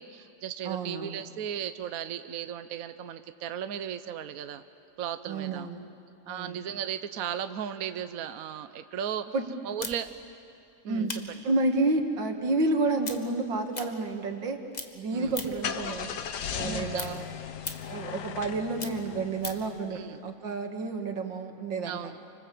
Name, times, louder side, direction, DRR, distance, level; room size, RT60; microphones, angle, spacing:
voice 1, 0.0-4.6 5.0-5.7 6.3-9.3 9.6-10.1 10.8-11.1 15.1-15.3 16.6-17.1 19.9-20.2 21.8-22.2, right 9 dB, 60° right, 10 dB, 1.2 m, -36 dB
voice 2, 0.6-1.2 5.3-5.8 6.3-6.6 9.3-9.4 10.9-11.1 11.4-14.6 14.9-16.1 16.5-17.3 17.9-22.1, right 2 dB, 85° right, 5 dB, 2.6 m, -30 dB
sound 1, 9.8-14.5 14.7-15.7 16.1-19.7, left 3 dB, 25° left, 1.4 m, -41 dB
Car / Engine starting, 15.2-19.9, left 8 dB, 65° left, 1.6 m, -37 dB
29.5 x 25.5 x 7.8 m, 2.8 s
omnidirectional pair, 2.0 m